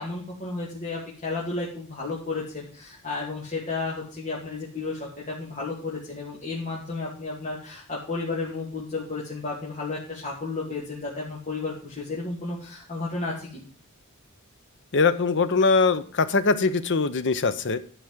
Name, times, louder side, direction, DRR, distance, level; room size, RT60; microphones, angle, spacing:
voice 1, 0.0-13.6, left 3 dB, 35° left, -5 dB, 2.3 m, -32 dB
voice 2, 14.9-17.8, left 4 dB, 55° left, 13 dB, 0.8 m, -22 dB
11.0 x 5.1 x 7.3 m, 0.43 s
head